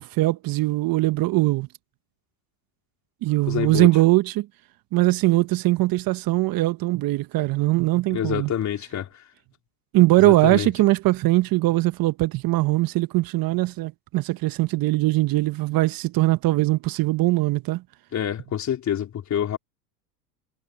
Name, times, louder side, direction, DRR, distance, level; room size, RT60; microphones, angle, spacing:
voice 1, 0.0-1.7 3.2-4.5 4.9-8.5 9.9-17.8, right 19 dB, 45° right, 1.3 m, -21 dB
voice 2, 3.5-3.9 8.1-9.2 10.2-10.7 18.1-19.6, left 10 dB, 35° left, 3.6 m, -27 dB
hypercardioid pair, 90°, 49 cm